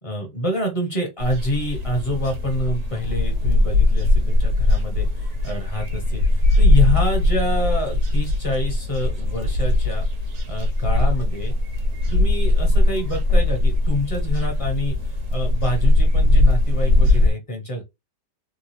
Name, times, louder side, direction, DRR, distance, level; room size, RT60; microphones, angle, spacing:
voice 1, 0.0-10.0 10.5-11.5 12.1-17.8, equal, 25° left, 0.8 m, -27 dB
sound 1, 1.2-17.3, left 2 dB, 55° right, 1.2 m, -20 dB
3.7 x 2.4 x 2.9 m
omnidirectional pair, 1.8 m